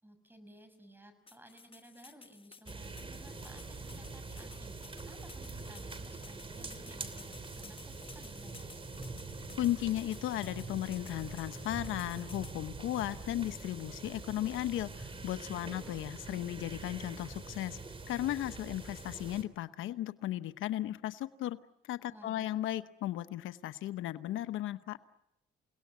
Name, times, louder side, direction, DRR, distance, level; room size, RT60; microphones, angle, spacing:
voice 1, 0.0-8.8 15.6-16.0 22.1-22.5, right 1 dB, 10° right, 9 dB, 6.5 m, -57 dB
sound 1, 1.3-12.6, left 4 dB, 25° left, 1.3 m, -56 dB
sound 2, 2.7-19.4, right 3 dB, 25° right, 3.0 m, -45 dB
voice 2, 9.6-17.8 18.1-21.6 21.8-25.0, left 13 dB, 85° left, 12 dB, 1.0 m, -35 dB
29.0 x 18.5 x 9.4 m, 0.85 s
cardioid pair, 90°, 20 cm